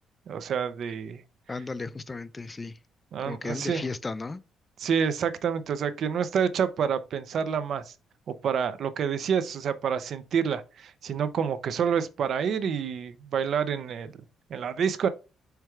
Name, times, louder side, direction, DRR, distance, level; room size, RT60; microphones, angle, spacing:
voice 1, 0.3-1.2 3.1-3.8 4.8-7.9 8.4-14.1 14.5-15.1, right 7 dB, 65° right, 0.5 m, -28 dB
voice 2, 1.5-2.8 3.2-4.4, left 3 dB, 25° left, 0.3 m, -35 dB
4.5 x 2.3 x 4.5 m
cardioid pair, 90°, 0 cm